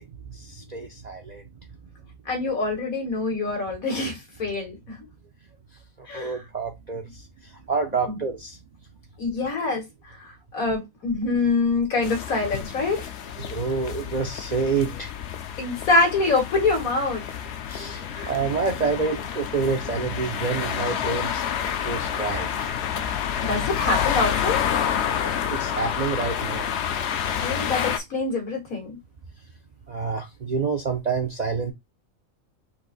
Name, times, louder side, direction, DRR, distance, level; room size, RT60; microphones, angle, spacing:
voice 1, 0.0-1.4 6.0-8.6 13.4-15.1 17.7-21.4 21.8-22.7 25.2-26.7 29.9-31.7, right 4 dB, 55° right, 0.5 m, -28 dB
voice 2, 2.3-5.0 6.1-6.4 8.0-8.2 9.2-9.8 10.2-13.1 15.6-17.2 18.1-18.4 23.4-24.6 27.4-29.0, left 3 dB, 85° left, 2.1 m, -25 dB
sound 1, 12.0-28.0, left 8 dB, 60° left, 0.8 m, -29 dB
4.2 x 2.6 x 3.9 m
omnidirectional pair, 1.5 m